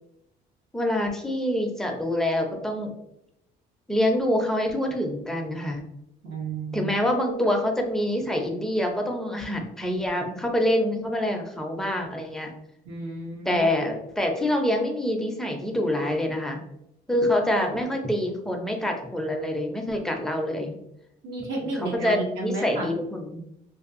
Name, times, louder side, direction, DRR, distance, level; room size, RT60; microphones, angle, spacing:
voice 1, 0.7-2.9 3.9-5.8 6.7-12.5 13.5-16.6 17.1-20.8 21.6-23.4, left 1 dB, 5° left, 2 dB, 0.5 m, -26 dB
voice 2, 6.2-6.9 12.8-13.7 21.2-22.9, right 2 dB, 85° right, -2 dB, 0.7 m, -32 dB
2.6 x 2.3 x 2.5 m, 0.81 s
cardioid pair, 110°, 17 cm